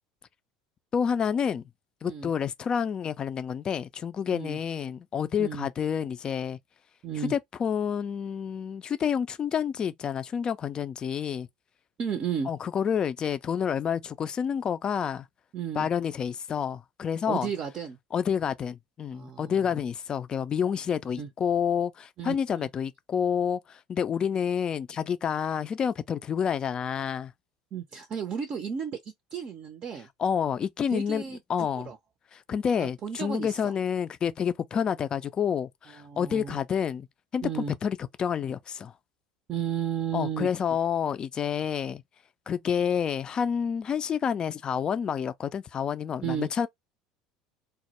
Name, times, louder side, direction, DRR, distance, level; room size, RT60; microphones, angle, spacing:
voice 1, 0.9-1.6 2.0-6.6 7.3-11.5 12.5-15.3 15.8-17.5 18.1-27.3 30.2-31.2 31.5-31.9 32.3-37.1 37.3-38.9 40.1-42.0 42.5-46.7, left 7 dB, 35° left, 0.3 m, -29 dB
voice 2, 4.3-4.6 5.4-5.7 7.0-7.3 12.0-12.5 15.5-15.9 17.3-18.0 19.1-19.5 21.2-21.3 22.2-22.7 27.7-29.0 29.3-30.1 30.9-31.4 31.8-32.0 32.8-33.7 36.0-36.6 37.4-37.7 39.5-40.5 46.2-46.5, right 8 dB, 45° right, 0.5 m, -33 dB
2.1 x 2.0 x 2.8 m
hypercardioid pair, 80°, 2 cm